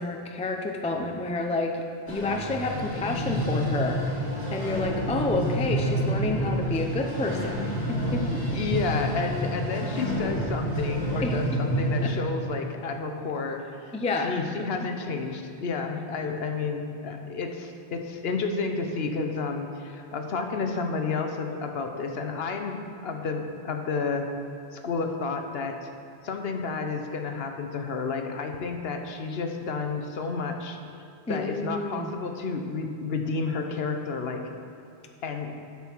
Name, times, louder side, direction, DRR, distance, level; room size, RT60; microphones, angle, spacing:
voice 1, 0.0-4.0 4.5-8.6 11.2-11.6 12.0-12.1 13.9-14.7 31.3-32.1, left 2 dB, 10° left, 3 dB, 0.4 m, -30 dB
sound 1, 2.1-12.1, equal, 45° left, 2.4 m, -28 dB
voice 2, 8.5-13.9 14.2-24.3 24.7-25.9 26.2-30.8 31.3-34.4 35.2-35.5, left 4 dB, 70° left, 5 dB, 1.0 m, -31 dB
10.5 x 6.0 x 4.5 m, 2.6 s
omnidirectional pair, 1.1 m